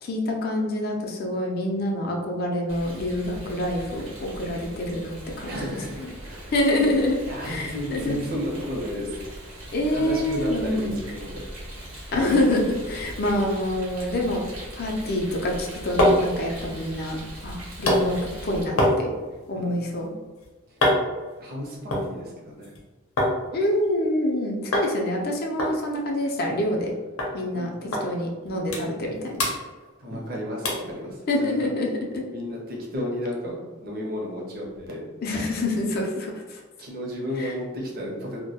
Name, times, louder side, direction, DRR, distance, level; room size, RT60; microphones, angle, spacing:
voice 1, 0.0-5.6 6.5-8.2 9.7-11.0 12.1-14.5 14.8-18.2 18.4-19.1 19.5-20.1 23.5-26.9 27.3-29.4 31.3-32.2 35.2-36.6 37.4-37.5, left 1 dB, 50° left, 1 dB, 0.4 m, -26 dB
Rain, 2.7-18.6, right 1 dB, 85° right, 0.8 m, -40 dB
voice 2, 5.5-6.5 7.1-9.2 9.9-11.4 19.5-19.8 20.7-20.8 21.4-22.7 27.5-28.0 30.0-31.7 32.3-35.0 36.8-38.4, equal, 45° right, -2 dB, 0.6 m, -33 dB
sound 1, 15.7-23.4 23.7-24.3 24.7-24.9 25.2-25.3 25.6-26.9 27.2-27.3 27.9-28.1 28.4-29.1 29.3-30.3 30.6-30.9 31.4-31.5, left 1 dB, 90° left, 0.6 m, -26 dB
2.2 x 2.1 x 2.7 m, 1.3 s
head